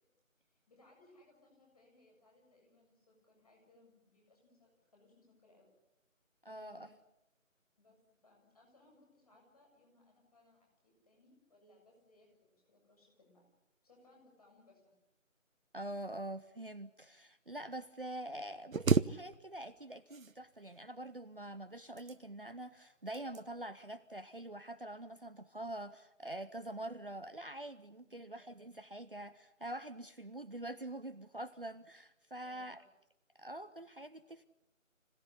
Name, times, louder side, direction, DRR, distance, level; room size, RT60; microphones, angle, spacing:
voice 1, 0.5-5.7 6.4-7.0 7.8-13.5 13.8-15.0 28.0-28.4 32.4-32.7, left 2 dB, 30° left, 0 dB, 7.4 m, -66 dB
voice 2, 6.5-6.9 15.7-32.8 33.4-34.4, right 1 dB, 40° right, 9 dB, 0.8 m, -45 dB
sound 1, 18.7-19.8 20.1-20.8 21.7-22.5 23.1-23.5 23.9-24.2, right 5 dB, 75° right, 0.9 m, -33 dB
25.5 x 17.5 x 9.9 m, 0.92 s
figure-of-eight pair, 170°, 41 cm